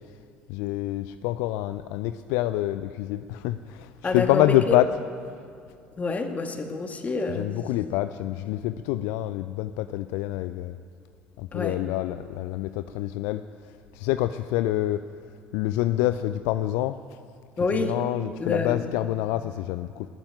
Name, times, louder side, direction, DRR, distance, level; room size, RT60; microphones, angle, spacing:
voice 1, 0.5-3.9 4.1-4.9 7.4-10.8 11.4-13.4 13.9-15.0 15.5-17.0 17.8-20.1, left 15 dB, 65° left, 11 dB, 0.4 m, -26 dB
voice 2, 4.0-4.8 6.0-7.5 11.5-11.9 17.6-18.1 18.4-18.9, left 3 dB, 25° left, 4 dB, 2.0 m, -28 dB
20.5 x 7.1 x 9.1 m, 2.3 s
hypercardioid pair, 60°, 6 cm